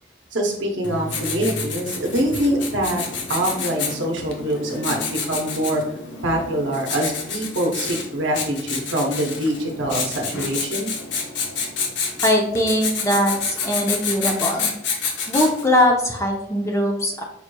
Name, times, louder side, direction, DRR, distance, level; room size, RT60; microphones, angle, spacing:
voice 1, 0.3-3.0 3.3-5.8 6.2-10.9, right 1 dB, 80° right, 0 dB, 0.7 m, -24 dB
Writing, 0.8-15.8, left 5 dB, 70° left, 0.7 m, -29 dB
voice 2, 12.2-14.7 15.3-17.2, left 1 dB, 15° left, 1 dB, 0.5 m, -21 dB
5.3 x 3.0 x 2.2 m, 0.74 s
head